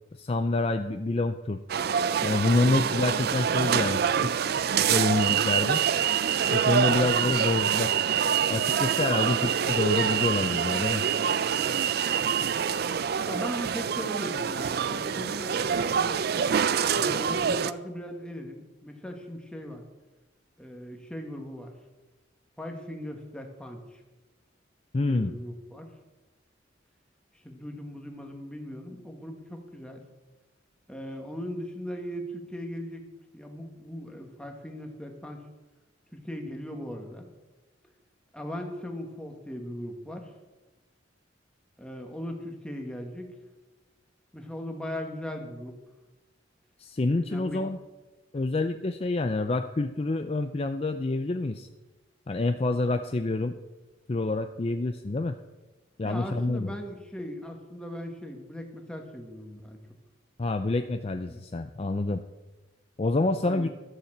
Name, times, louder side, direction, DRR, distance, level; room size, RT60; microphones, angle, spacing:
voice 1, 0.1-1.6 2.2-4.3 4.9-5.8 6.5-7.9 8.5-11.1 24.9-25.3 46.8-47.8 48.3-51.7 52.3-53.5 54.1-55.4 56.0-56.7 60.4-62.2 63.0-63.7, left 2 dB, 30° left, 8 dB, 0.5 m, -27 dB
sound 1, 1.7-17.7, right 7 dB, 55° right, 0.4 m, -26 dB
voice 2, 9.0-9.4 13.3-16.5 17.0-19.8 20.6-21.7 22.6-24.0 25.0-25.9 27.4-30.0 30.9-33.0 33.3-35.4 36.1-37.3 38.3-40.3 41.8-43.4 44.3-45.8 47.2-47.6 56.0-59.8 61.3-61.4 63.4-63.7, equal, 5° left, 2 dB, 1.6 m, -39 dB
12.5 x 7.2 x 7.3 m, 1.2 s
head